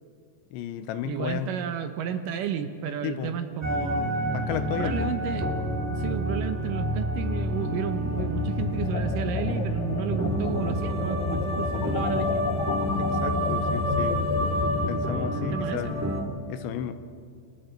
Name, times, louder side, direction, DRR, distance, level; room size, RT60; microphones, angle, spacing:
voice 1, 0.5-1.5 3.0-3.4 4.3-5.1 13.0-14.4 14.9-16.1 16.5-16.9, left 10 dB, 85° left, 10 dB, 3.3 m, -33 dB
voice 2, 1.1-4.2 4.8-5.5 5.9-12.6 15.4-16.0, right 8 dB, 80° right, 8 dB, 1.9 m, -32 dB
sound 1, 3.6-16.2, equal, 5° right, 1.5 m, -28 dB
sound 2, 8.2-15.0, left 5 dB, 70° left, 1.8 m, -33 dB
29.5 x 28.0 x 4.6 m, 2.2 s
omnidirectional pair, 5.2 m